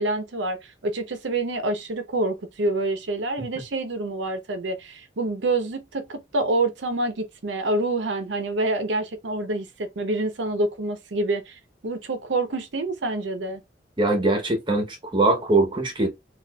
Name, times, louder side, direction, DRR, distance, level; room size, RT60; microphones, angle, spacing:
voice 1, 0.0-13.6, right 2 dB, 75° right, 0.7 m, -27 dB
voice 2, 14.0-16.1, right 2 dB, 25° right, 0.8 m, -22 dB
4.1 x 2.4 x 2.2 m
head